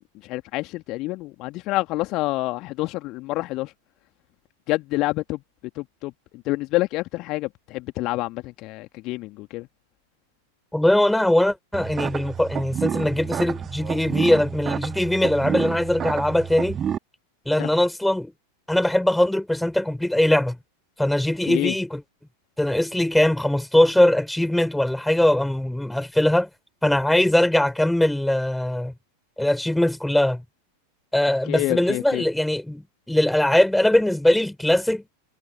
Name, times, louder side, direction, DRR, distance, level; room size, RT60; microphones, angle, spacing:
voice 1, 0.2-3.7 4.7-5.4 5.8-6.1 6.5-9.7 17.6-17.7 21.5-21.7 31.5-32.2, left 20 dB, 40° left, 2.0 m, -27 dB
voice 2, 10.7-16.8 17.5-18.3 18.7-20.6 21.0-22.0 22.6-26.5 26.8-28.9 29.4-30.4 31.1-35.0, left 1 dB, 5° left, 4.0 m, -21 dB
sound 1, 11.7-17.0, right 8 dB, 25° right, 2.6 m, -29 dB
figure-of-eight pair, 90°, 0 cm